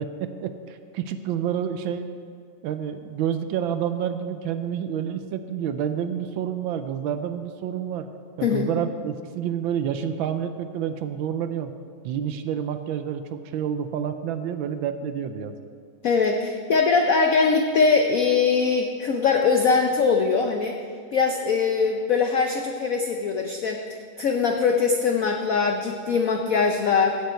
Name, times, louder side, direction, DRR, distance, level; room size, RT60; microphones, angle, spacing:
voice 1, 0.0-2.1 2.6-8.1 8.4-11.7 12.0-15.6, right 9 dB, 75° right, 9 dB, 1.3 m, -29 dB
voice 2, 16.0-20.8 21.1-23.8 24.2-27.2, left 5 dB, 85° left, 3 dB, 0.7 m, -22 dB
15.5 x 7.6 x 4.4 m, 2.1 s
omnidirectional pair, 2.3 m